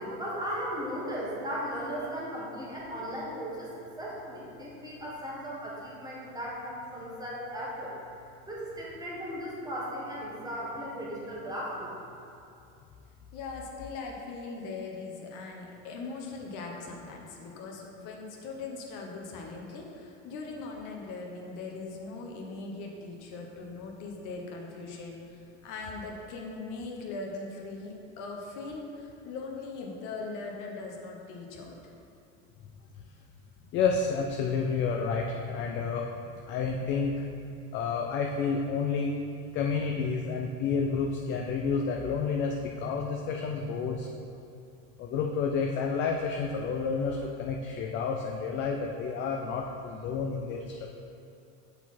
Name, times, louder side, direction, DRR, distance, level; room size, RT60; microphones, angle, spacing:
voice 1, 0.0-7.9 8.5-12.0, equal, 10° right, -5 dB, 1.3 m, -36 dB
voice 2, 13.3-31.9, left 3 dB, 55° left, 0 dB, 1.1 m, -40 dB
voice 3, 33.7-36.1 36.5-37.2 37.7-39.2 39.5-44.1 45.0-50.9, left 5 dB, 35° left, 1 dB, 0.4 m, -30 dB
6.8 x 4.2 x 4.2 m, 2.6 s
supercardioid pair, 125°, 37 cm